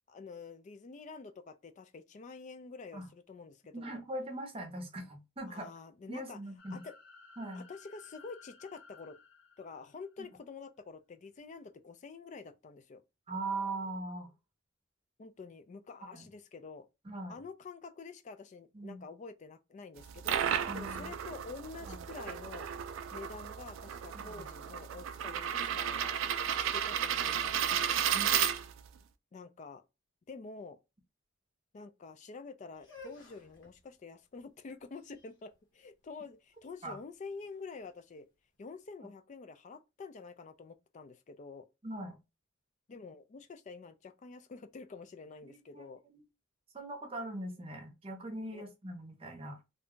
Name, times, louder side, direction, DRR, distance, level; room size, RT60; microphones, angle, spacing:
voice 1, 0.1-4.0 5.5-6.4 6.7-6.9 7.5-9.2 9.6-13.0 15.2-16.9 17.3-22.7 23.1-26.2 26.6-27.9 29.3-29.8 30.3-30.8 31.7-38.3 38.6-41.7 42.9-46.0 48.5-48.6, left 4 dB, 35° left, 0.3 m, -48 dB
voice 2, 3.7-5.7 6.1-6.8 7.4-7.6 13.3-14.3 16.1-16.3 17.0-17.3 18.7-19.0 20.6-21.1 21.9-22.0 24.1-24.4 28.1-28.3 36.8-37.0 41.8-42.2 45.5-46.2 46.7-49.6, right 2 dB, 30° right, 0.7 m, -41 dB
sound 1, 6.6-10.3, left 5 dB, 80° left, 1.4 m, -57 dB
sound 2, 20.0-29.0, right 9 dB, 75° right, 0.3 m, -33 dB
sound 3, 32.7-38.7, left 2 dB, 60° left, 1.0 m, -56 dB
2.5 x 2.2 x 3.6 m
head